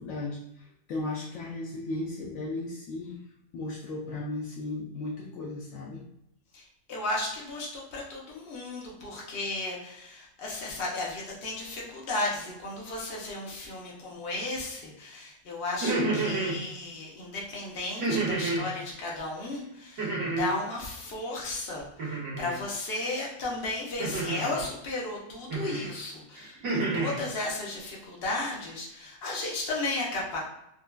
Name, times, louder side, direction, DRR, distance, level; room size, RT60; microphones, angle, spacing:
voice 1, 0.0-3.2 3.5-6.0, left 2 dB, 75° left, -3 dB, 0.9 m, -36 dB
voice 2, 6.5-30.4, left 2 dB, 50° left, -3 dB, 1.0 m, -34 dB
sound 1, 15.7-16.6 18.0-18.7 20.0-20.6 22.0-22.6 24.0-24.6 25.5-25.9 26.3-27.2, right 3 dB, 75° right, 1.8 m, -29 dB
4.4 x 2.3 x 2.2 m, 0.81 s
omnidirectional pair, 1.5 m